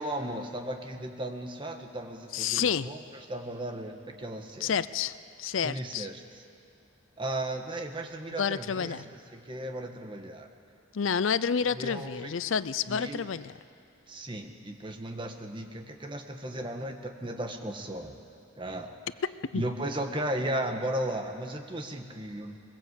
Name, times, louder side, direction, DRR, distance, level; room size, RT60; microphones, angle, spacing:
voice 1, 0.0-4.7 5.6-6.4 7.2-10.5 11.7-12.3 12.9-13.3 14.1-18.1 18.6-18.9 19.5-22.6, right 1 dB, 25° right, 4 dB, 1.5 m, -35 dB
voice 2, 2.3-2.9 4.6-6.1 8.4-9.0 10.9-13.5 19.3-19.6, left 7 dB, 85° left, 16 dB, 0.5 m, -29 dB
22.0 x 21.0 x 8.2 m, 2.5 s
head